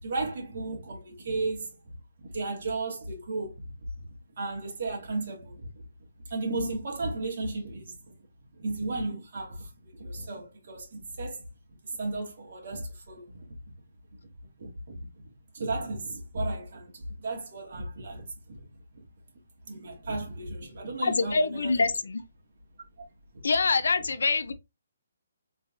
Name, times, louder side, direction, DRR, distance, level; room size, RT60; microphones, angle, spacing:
voice 1, 0.0-1.9 2.2-3.6 4.0-4.1 4.4-5.8 6.3-8.0 8.6-11.4 11.8-13.5 14.6-15.1 15.5-18.6 18.9-19.0 19.7-21.9 23.3-23.5, right 2 dB, 55° right, 2.1 m, -34 dB
voice 2, 21.0-22.2 23.4-24.5, left 4 dB, 80° left, 0.6 m, -25 dB
3.9 x 3.8 x 2.6 m
hypercardioid pair, 170°, 0 cm